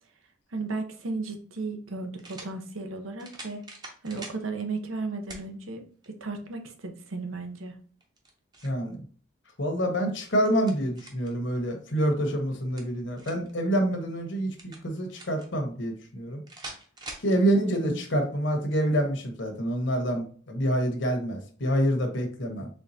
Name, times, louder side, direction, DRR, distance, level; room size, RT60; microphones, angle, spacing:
voice 1, 0.5-3.6 4.0-7.8 17.3-18.0, right 3 dB, 80° right, 6 dB, 0.8 m, -35 dB
sound 1, 1.0-1.1 2.2-2.5 3.2-4.4 5.3-5.5 6.0-6.1 8.0-8.8 10.2-11.3 12.5-13.5 14.6-15.5 16.5-17.3, right 2 dB, 20° right, 0.8 m, -44 dB
voice 2, 8.6-9.0 9.6-16.4 17.2-22.7, equal, 60° left, 4 dB, 1.1 m, -27 dB
4.5 x 3.5 x 2.7 m, 0.44 s
head